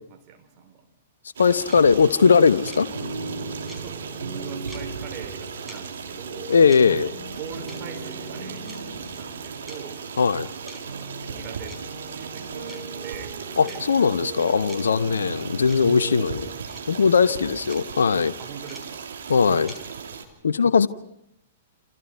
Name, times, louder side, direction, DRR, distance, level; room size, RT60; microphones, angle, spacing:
voice 1, 0.3-0.8 3.8-6.5 6.9-10.0 10.8-11.8 12.1-14.2 15.1-15.3 17.3-17.9 18.4-19.1, right 7 dB, 35° right, 5 dB, 4.3 m, -42 dB
voice 2, 1.4-2.9 6.5-7.1 10.2-10.5 13.6-16.5 16.9-18.3 19.3-19.7 20.4-20.9, left 5 dB, 70° left, 13 dB, 1.0 m, -19 dB
Stream, 1.4-20.3, right 6 dB, 65° right, 3.0 m, -38 dB
sound 1, 1.7-1.8 2.7-2.8 3.7-3.8 4.7-4.8 5.7-5.8 6.7-6.8 7.7-7.8 8.7-8.8 9.7-9.8 10.7-10.8 11.7-11.8 12.7-12.8 13.7-13.8 14.7-14.8 15.7-15.8 16.7-16.8 17.7-17.8 18.7-18.8 19.7-19.8, equal, 5° right, 4.7 m, -43 dB
sound 2, 2.6-16.5, right 3 dB, 85° right, 6.1 m, -38 dB
28.5 x 28.0 x 4.6 m, 0.78 s
figure-of-eight pair, 110°, 0 cm